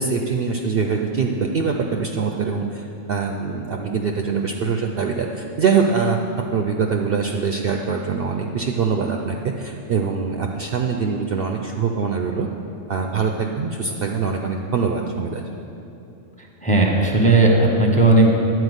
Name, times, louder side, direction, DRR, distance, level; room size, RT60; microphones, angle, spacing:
voice 1, 0.0-6.2 6.5-12.5 12.9-15.6, right 5 dB, 60° right, 2 dB, 0.7 m, -23 dB
voice 2, 16.6-18.3, right 2 dB, 5° left, 0 dB, 0.9 m, -15 dB
10.5 x 4.7 x 8.0 m, 2.8 s
omnidirectional pair, 1.3 m